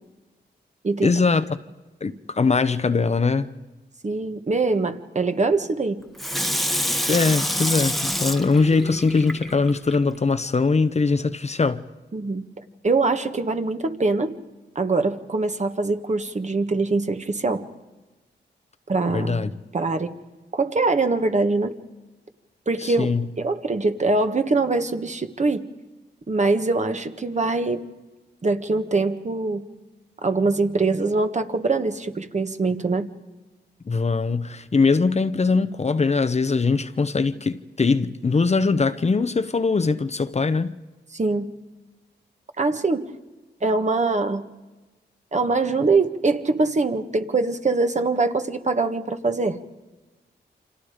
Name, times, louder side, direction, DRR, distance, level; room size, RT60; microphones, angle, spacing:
voice 1, 1.0-1.4 2.0-3.5 7.1-11.9 19.1-19.5 22.8-23.3 33.9-40.8, left 4 dB, 35° left, 0.9 m, -21 dB
voice 2, 4.0-6.0 12.1-14.3 14.7-17.6 18.9-19.4 19.7-20.1 20.5-21.7 22.7-25.6 26.3-27.8 28.4-29.6 30.2-33.1 41.1-41.4 42.6-43.0 43.6-44.4 45.3-49.6, right 3 dB, 40° right, 1.6 m, -23 dB
Water tap faucet / Sink (filling or washing), 6.2-10.0 10.5-10.6, equal, ahead, 1.2 m, -26 dB
29.5 x 26.5 x 5.1 m
cardioid pair, 85°, 19 cm